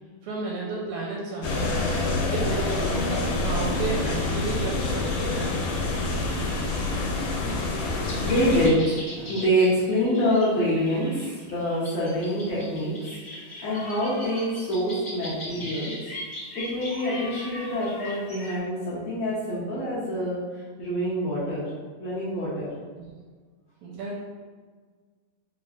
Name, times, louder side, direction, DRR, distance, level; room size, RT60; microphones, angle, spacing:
voice 1, 0.2-1.9 2.3-5.6 23.0-23.1 23.8-24.2, right 3 dB, 80° right, -3 dB, 1.7 m, -32 dB
sound 1, 1.4-8.7, left 2 dB, 90° left, 2.2 m, -27 dB
voice 2, 7.8-12.9 13.3-15.9 16.5-20.4 20.8-21.6 22.0-22.7, equal, 70° left, -9 dB, 1.6 m, -26 dB
sound 2, 8.0-18.5, left 1 dB, 55° left, 0.6 m, -40 dB
5.8 x 2.1 x 2.4 m, 1.5 s
omnidirectional pair, 3.6 m